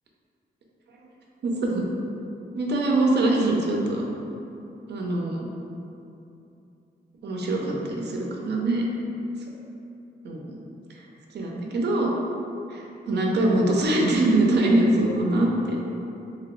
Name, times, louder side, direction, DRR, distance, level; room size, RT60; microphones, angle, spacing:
voice 1, 1.4-1.9 2.5-4.0 4.9-5.5 7.2-8.8 9.4-9.5 10.2-10.6 10.9-11.1 11.3-12.1 12.7-15.8, right 2 dB, 85° right, -1 dB, 0.5 m, -23 dB
2.9 x 2.8 x 3.0 m, 2.8 s
wide cardioid pair, 150°, 17 cm